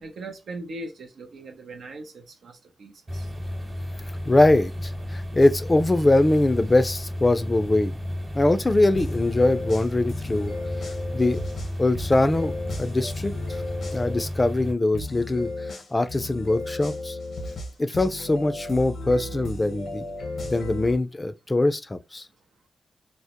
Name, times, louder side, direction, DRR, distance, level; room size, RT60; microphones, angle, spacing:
voice 1, 0.0-3.3, right 2 dB, 75° right, 0.5 m, -40 dB
sound 1, 3.1-14.7, left 1 dB, 30° right, 1.1 m, -33 dB
voice 2, 4.3-7.9 8.4-10.5 11.1-11.4 11.8-12.5 12.8-13.3 13.9-15.5 15.9-17.2 17.8-20.0 20.5-22.2, left 2 dB, 30° left, 0.4 m, -22 dB
sound 2, 8.9-14.3 14.9-20.9, left 2 dB, 75° left, 0.6 m, -35 dB
2.1 x 2.0 x 2.8 m
supercardioid pair, 45°, 0 cm